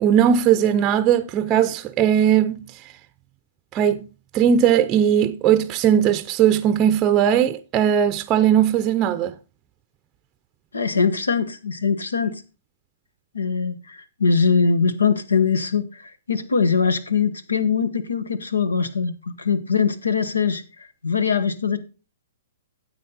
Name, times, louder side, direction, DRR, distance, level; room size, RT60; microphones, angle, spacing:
voice 1, 0.0-2.6 3.7-4.0 4.3-9.3, right 9 dB, 25° right, 0.5 m, -18 dB
voice 2, 10.7-12.4 13.3-20.6 21.0-21.8, left 5 dB, 90° left, 1.2 m, -22 dB
9.9 x 7.6 x 4.0 m
hypercardioid pair, 125°, 0 cm